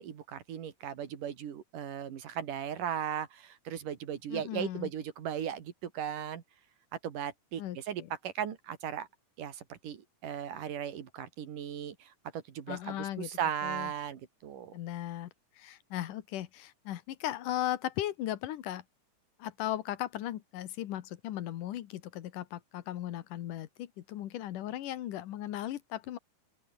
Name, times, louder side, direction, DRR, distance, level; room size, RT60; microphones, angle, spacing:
voice 1, 0.0-6.4 7.0-9.1 9.4-14.7, right 9 dB, 85° right, 3.8 m, -37 dB
voice 2, 4.3-4.9 7.6-8.1 12.7-13.3 13.6-13.9 14.7-15.3 15.6-18.8 19.4-26.2, left 13 dB, 90° left, 2.9 m, -37 dB
open air
omnidirectional pair, 3.6 m